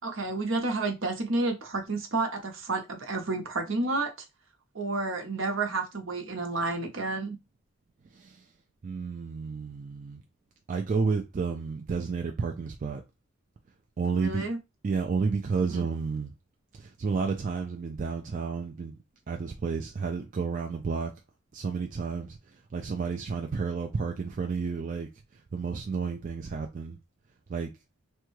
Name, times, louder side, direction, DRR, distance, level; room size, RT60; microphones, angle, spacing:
voice 1, 0.0-4.1 4.7-7.4 14.2-14.6 15.7-15.9, right 3 dB, 70° right, 0.8 m, -30 dB
voice 2, 8.8-10.2 10.7-13.0 14.0-14.4 14.8-16.3 16.8-18.9 19.3-21.1 21.5-22.4 22.7-25.1 25.5-26.9 27.5-27.7, right 5 dB, 40° right, 0.3 m, -31 dB
3.4 x 2.2 x 3.0 m
head